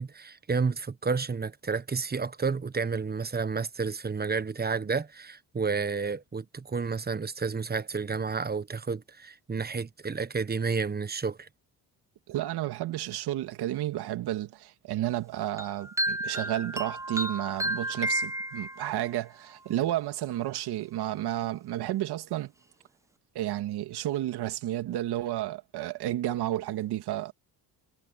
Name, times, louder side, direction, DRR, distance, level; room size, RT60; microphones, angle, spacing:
voice 1, 0.0-11.5, right 5 dB, 25° right, 1.2 m, -31 dB
voice 2, 12.3-22.5 23.3-27.3, right 14 dB, 75° right, 2.3 m, -31 dB
sound 1, 15.6-19.1, right 1 dB, 10° right, 0.8 m, -32 dB
supercardioid pair, 65°, 39 cm